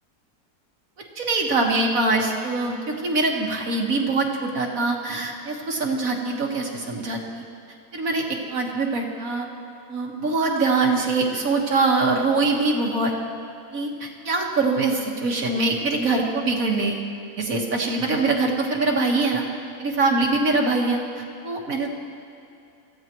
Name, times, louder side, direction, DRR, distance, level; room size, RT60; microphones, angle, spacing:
voice 1, 1.2-7.4 7.9-9.5 9.9-13.1 13.7-17.1 17.4-19.5 19.8-21.9, right 3 dB, 55° right, 0 dB, 2.0 m, -23 dB
26.0 x 15.0 x 3.1 m, 2.7 s
omnidirectional pair, 1.7 m